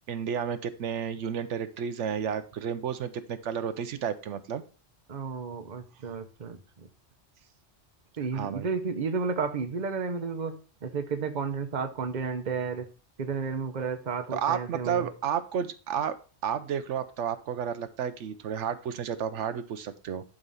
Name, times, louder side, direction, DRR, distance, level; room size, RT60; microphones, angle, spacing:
voice 1, 0.1-4.6 8.3-8.7 14.3-20.2, right 8 dB, 80° right, 11 dB, 1.0 m, -31 dB
voice 2, 5.1-6.9 8.2-12.9 13.2-15.1, right 5 dB, 40° right, 7 dB, 1.0 m, -32 dB
11.0 x 3.9 x 5.5 m, 0.37 s
omnidirectional pair, 1.2 m